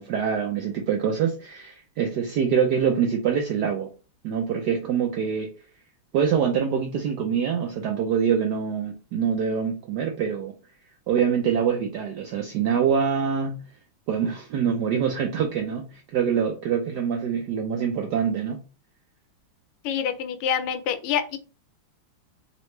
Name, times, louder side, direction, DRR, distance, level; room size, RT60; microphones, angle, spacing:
voice 1, 0.0-3.9 4.2-5.5 6.1-10.5 11.1-13.6 14.1-18.6, right 7 dB, 80° right, 3 dB, 0.9 m, -25 dB
voice 2, 19.8-21.4, left 8 dB, 85° left, 10 dB, 1.5 m, -26 dB
3.8 x 3.1 x 3.1 m, 0.35 s
omnidirectional pair, 2.4 m